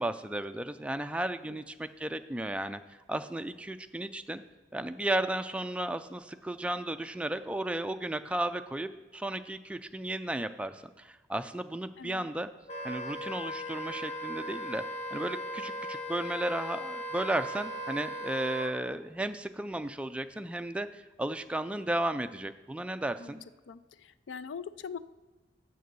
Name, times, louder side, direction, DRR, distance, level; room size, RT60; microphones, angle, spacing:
voice 1, 0.0-2.8 3.1-4.4 4.7-12.5 12.8-14.8 15.1-23.4, right 1 dB, 5° right, 9 dB, 0.3 m, -34 dB
voice 2, 12.0-12.3 23.2-23.4 23.7-25.0, left 6 dB, 80° left, 15 dB, 0.4 m, -42 dB
Wind instrument woodwind instrument, 12.7-18.7, equal, 35° left, 0.8 m, -38 dB
6.8 x 6.5 x 6.8 m, 1.2 s
head